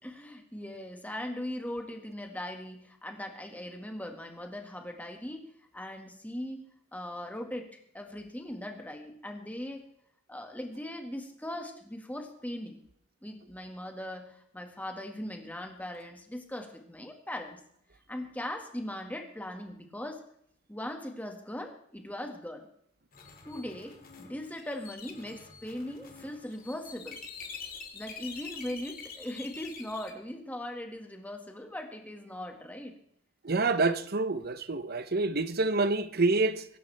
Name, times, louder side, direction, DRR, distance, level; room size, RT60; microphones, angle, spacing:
voice 1, 0.0-9.9 10.3-12.8 13.2-17.6 18.1-20.2 20.7-22.7 23.4-27.2 27.9-33.0, left 1 dB, 10° left, 2.0 m, -39 dB
sound 1, 23.1-30.1, left 5 dB, 50° left, 2.4 m, -46 dB
voice 2, 33.4-36.7, right 3 dB, 50° right, 0.9 m, -27 dB
23.0 x 11.0 x 3.5 m
head